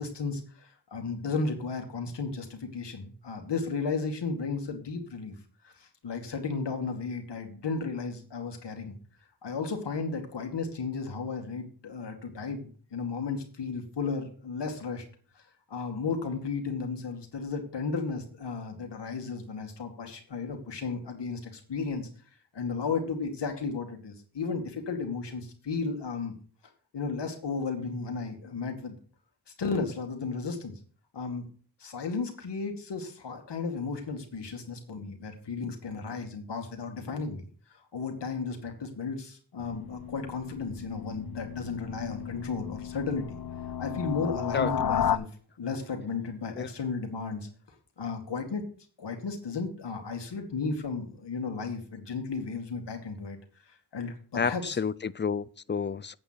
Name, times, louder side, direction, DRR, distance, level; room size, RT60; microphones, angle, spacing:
voice 1, 0.0-5.4 5.6-9.0 9.4-15.0 15.4-15.5 15.7-22.1 22.5-26.3 26.9-29.0 29.6-30.7 31.1-31.5 31.8-37.5 37.9-43.4 43.8-45.3 45.6-47.5 48.0-48.6 49.0-53.4 53.9-54.8, left 4 dB, 90° left, 2.2 m, -34 dB
sound 1, 39.6-45.2, left 9 dB, 60° left, 0.7 m, -33 dB
voice 2, 54.3-56.2, left 6 dB, 25° left, 0.6 m, -30 dB
8.7 x 8.6 x 5.8 m
cardioid pair, 60°, 41 cm